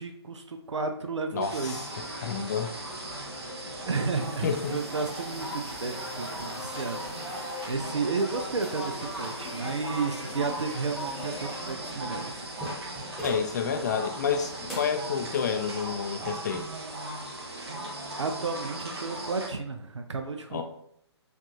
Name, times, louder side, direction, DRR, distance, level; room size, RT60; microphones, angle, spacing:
voice 1, 0.0-1.9 2.3-2.4 3.9-12.5 18.2-20.6, right 4 dB, 80° right, 5 dB, 0.4 m, -32 dB
voice 2, 1.3-2.8 4.4-4.8 13.2-16.7 20.5-20.6, left 6 dB, 40° left, 6 dB, 0.4 m, -30 dB
sound 1, 1.4-19.5, right 1 dB, 65° right, 1.0 m, -38 dB
sound 2, 1.9-14.8, left 2 dB, 85° left, 0.9 m, -43 dB
sound 3, 3.7-13.5 14.0-14.1 14.7-15.0, right 1 dB, ahead, 0.9 m, -45 dB
4.5 x 2.4 x 2.8 m, 0.72 s
figure-of-eight pair, 135°, 15 cm